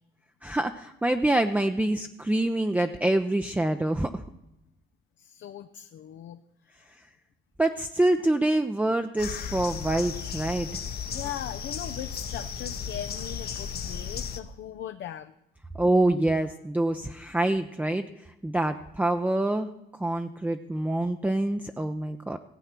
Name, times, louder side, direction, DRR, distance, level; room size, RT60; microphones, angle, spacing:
voice 1, 0.4-4.2 7.6-10.7 15.7-18.0 18.4-22.4, right 1 dB, 10° right, 6 dB, 0.6 m, -26 dB
voice 2, 5.2-6.4 6.7-6.9 11.1-15.3, left 10 dB, 70° left, 8 dB, 0.6 m, -39 dB
sound 1, 9.2-14.4, left 7 dB, 55° left, 1.0 m, -35 dB
16.0 x 8.1 x 5.9 m, 0.90 s
cardioid pair, 90°, 20 cm